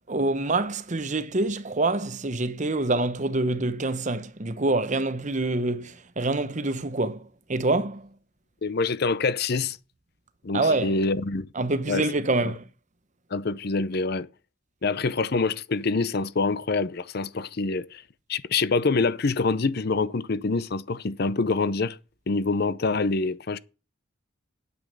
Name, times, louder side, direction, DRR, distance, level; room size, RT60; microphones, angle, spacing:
voice 1, 0.1-8.1 10.5-10.9 11.5-12.6, right 2 dB, 35° right, 0.9 m, -26 dB
voice 2, 8.6-9.8 10.4-11.5 11.9-12.1 12.4-12.5 13.3-14.3 14.8-18.0 18.3-22.0 22.3-23.6, left 3 dB, 50° left, 0.6 m, -26 dB
9.3 x 8.5 x 6.7 m
head